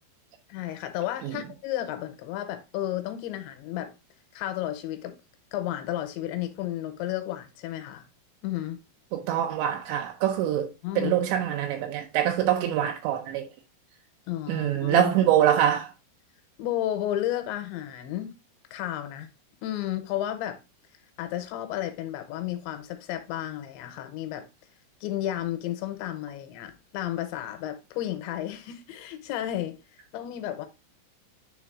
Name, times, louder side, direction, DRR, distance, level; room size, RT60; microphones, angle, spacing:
voice 1, 0.5-3.9 4.3-5.2 5.5-8.1 8.4-8.8 10.8-11.2 14.3-15.1 16.6-18.4 18.7-19.3 19.6-20.6 21.2-24.5 25.0-29.8 30.1-30.7, left 12 dB, 80° left, 2.9 m, -32 dB
voice 2, 9.1-10.7 11.0-13.5 14.5-15.9, right 11 dB, 80° right, 2.8 m, -24 dB
9.9 x 3.5 x 3.5 m
omnidirectional pair, 5.5 m